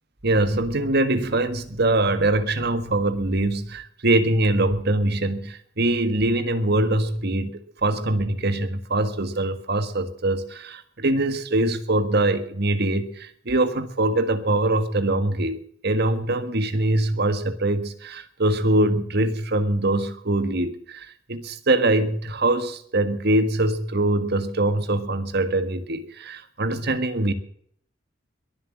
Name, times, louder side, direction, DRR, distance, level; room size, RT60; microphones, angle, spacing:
voice 1, 0.2-27.3, right 2 dB, 55° right, 11 dB, 1.6 m, -23 dB
22.0 x 7.7 x 7.3 m, 0.62 s
head